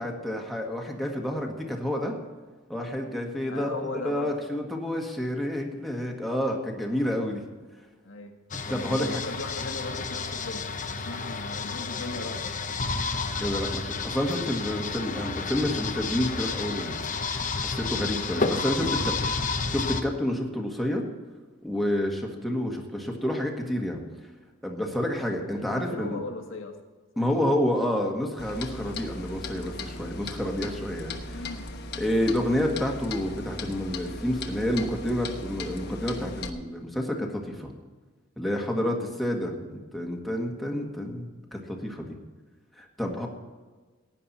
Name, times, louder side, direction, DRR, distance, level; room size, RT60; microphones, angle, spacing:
voice 1, 0.0-2.1 2.7-7.4 8.7-9.2 13.4-17.0 17.6-21.0 21.6-24.0 24.6-26.2 27.2-31.5 32.0-37.7 38.4-42.2 42.8-43.3, left 1 dB, ahead, 0 dB, 1.7 m, -29 dB
voice 2, 3.5-4.3 8.0-8.4 8.7-10.7 10.9-12.4 25.6-26.8 27.2-27.3 31.3-31.6, left 2 dB, 80° left, 4 dB, 1.7 m, -37 dB
sound 1, 8.5-20.0, left 4 dB, 40° left, 0.9 m, -31 dB
Clock, 28.4-36.5, left 2 dB, 55° left, 1.1 m, -38 dB
16.0 x 9.9 x 4.3 m, 1.3 s
head